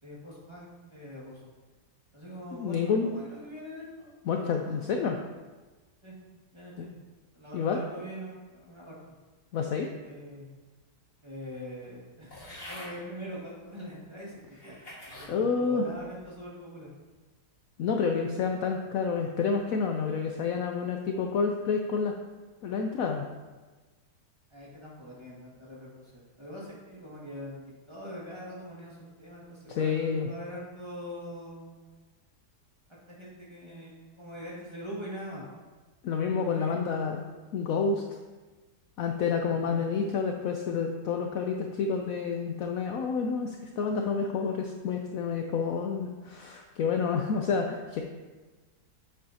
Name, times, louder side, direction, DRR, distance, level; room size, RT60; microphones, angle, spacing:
voice 1, 0.0-1.4 2.1-4.9 6.0-6.1 6.5-7.0 7.3-9.0 10.0-10.6 11.2-16.9 24.5-27.6 27.9-31.8 32.9-35.5 36.3-36.9 39.5-39.8, equal, 15° right, -6 dB, 1.8 m, -43 dB
voice 2, 2.5-3.1 4.3-5.2 6.8-6.9 7.5-7.8 9.5-9.9 15.3-15.9 17.8-22.1 22.6-23.3 29.8-30.3 36.0-37.2 37.5-38.0 39.0-48.0, left 5 dB, 70° left, 3 dB, 0.9 m, -29 dB
sound 1, 12.3-12.9 13.7-13.8 14.5-15.3 15.9-16.3, left 1 dB, 35° left, 1.9 m, -45 dB
7.7 x 7.7 x 2.8 m, 1.3 s
omnidirectional pair, 1.8 m